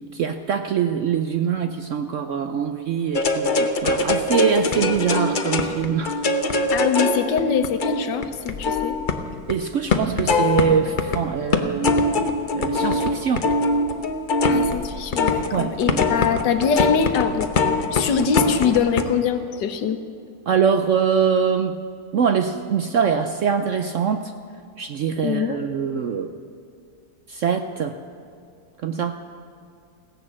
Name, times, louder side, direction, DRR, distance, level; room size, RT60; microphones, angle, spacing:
voice 1, 0.0-6.1 9.5-12.0 12.5-13.5 15.5-16.0 20.5-21.8 22.1-24.3 24.8-26.3 27.3-28.0 28.8-29.1, right 7 dB, 65° right, 8 dB, 0.7 m, -23 dB
sound 1, 3.1-9.6 9.9-11.2 11.5-19.0, left 3 dB, 40° left, 0.7 m, -22 dB
voice 2, 6.7-9.0 14.5-17.5 17.9-20.0 25.2-25.6, left 6 dB, 80° left, 9 dB, 1.6 m, -23 dB
16.0 x 10.5 x 7.4 m, 2.4 s
omnidirectional pair, 1.9 m